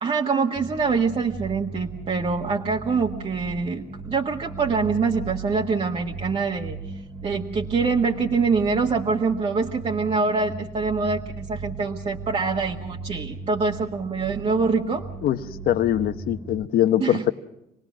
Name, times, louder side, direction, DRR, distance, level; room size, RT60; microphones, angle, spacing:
voice 1, 0.0-6.8 7.2-15.1 17.0-17.2, right 4 dB, 35° right, 0 dB, 1.6 m, -25 dB
sound 1, 0.6-16.6, right 4 dB, 15° right, 0.9 m, -37 dB
voice 2, 15.7-17.3, left 12 dB, 60° left, 9 dB, 1.0 m, -22 dB
27.0 x 19.0 x 6.2 m, 0.87 s
cardioid pair, 110°, 17 cm